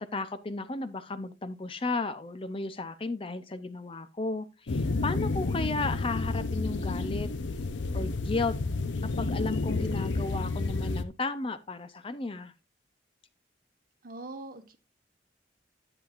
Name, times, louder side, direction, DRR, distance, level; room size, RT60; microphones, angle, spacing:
voice 1, 0.0-7.3 7.9-8.6 9.2-12.5, left 3 dB, 30° left, 0.5 m, -34 dB
sound 1, 4.7-11.0, left 3 dB, 85° left, 0.7 m, -30 dB
voice 2, 14.0-14.8, right 2 dB, 50° right, 1.2 m, -42 dB
10.5 x 8.8 x 2.4 m
head